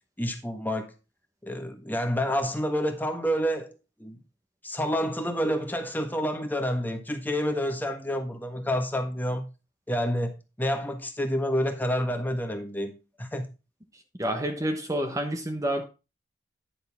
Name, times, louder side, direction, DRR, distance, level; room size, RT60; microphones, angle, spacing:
voice 1, 0.2-0.9 1.4-4.2 4.6-9.4 9.9-12.9 13.2-13.4, equal, 10° left, 1.4 m, -28 dB
voice 2, 14.2-15.9, right 1 dB, 20° right, 1.1 m, -28 dB
10.5 x 6.7 x 3.6 m
head